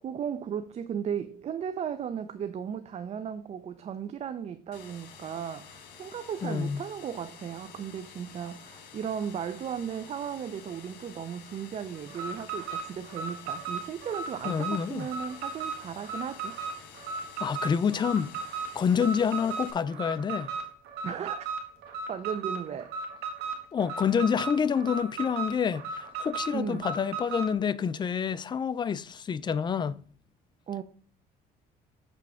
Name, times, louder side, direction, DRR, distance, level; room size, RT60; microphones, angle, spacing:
voice 1, 0.0-16.6 21.0-21.5 22.1-22.9 26.5-26.9 30.7-30.8, right 8 dB, 40° right, 0.5 m, -36 dB
sound 1, 4.7-19.7, left 6 dB, 85° left, 1.6 m, -50 dB
voice 2, 6.4-6.8 14.4-15.1 17.4-18.3 18.8-20.5 23.7-30.0, left 7 dB, 25° left, 0.4 m, -28 dB
Alarm, 12.1-27.5, right 5 dB, 80° right, 1.5 m, -36 dB
6.9 x 3.5 x 6.1 m
cardioid pair, 110°, 17 cm